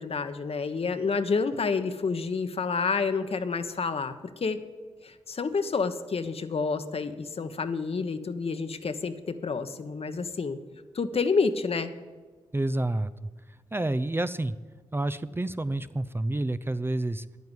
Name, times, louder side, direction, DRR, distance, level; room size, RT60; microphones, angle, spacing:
voice 1, 0.0-4.6 5.0-10.6 10.9-11.9, left 4 dB, 55° left, 9 dB, 1.2 m, -29 dB
voice 2, 12.5-13.1 13.7-14.5 14.9-17.2, right 2 dB, 20° right, 13 dB, 0.6 m, -29 dB
10.5 x 9.4 x 9.9 m, 1.4 s
supercardioid pair, 40°, 12 cm